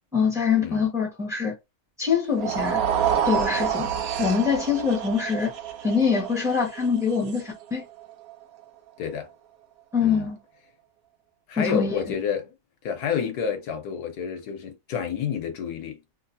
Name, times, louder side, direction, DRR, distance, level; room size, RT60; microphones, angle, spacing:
voice 1, 0.1-1.5 2.0-2.8 3.2-3.9 4.2-5.5 5.8-7.8 9.9-10.4 11.6-12.0, left 6 dB, ahead, 1.3 m, -24 dB
sound 1, 2.3-8.6, right 8 dB, 70° right, 1.0 m, -28 dB
voice 2, 9.0-9.3 10.0-10.3 11.5-12.5 12.8-16.0, left 7 dB, 75° left, 1.3 m, -29 dB
3.1 x 3.0 x 2.6 m
omnidirectional pair, 1.7 m